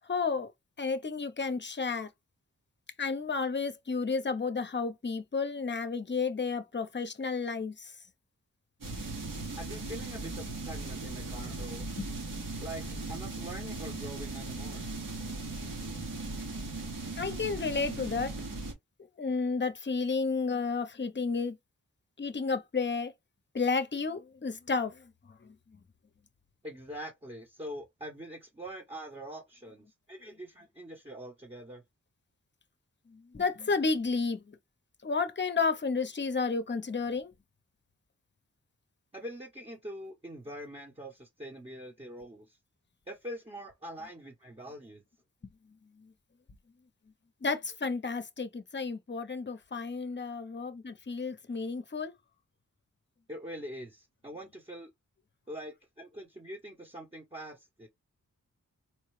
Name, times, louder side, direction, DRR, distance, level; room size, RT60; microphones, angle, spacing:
voice 1, 0.0-0.5 0.8-2.1 3.0-8.0 12.0-12.1 17.2-18.4 19.2-21.6 22.2-23.1 23.5-25.5 33.1-34.6 35.0-37.3 45.4-45.5 46.0-46.1 47.4-52.1, left 4 dB, 35° left, 0.8 m, -32 dB
sound 1, 8.8-18.7, right 2 dB, 80° right, 2.2 m, -38 dB
voice 2, 9.6-11.9 12.6-14.8 26.6-31.8 39.1-42.6 43.1-45.0 53.3-54.9 55.5-57.9, equal, 20° right, 1.0 m, -44 dB
4.5 x 2.3 x 3.2 m
cardioid pair, 55°, 33 cm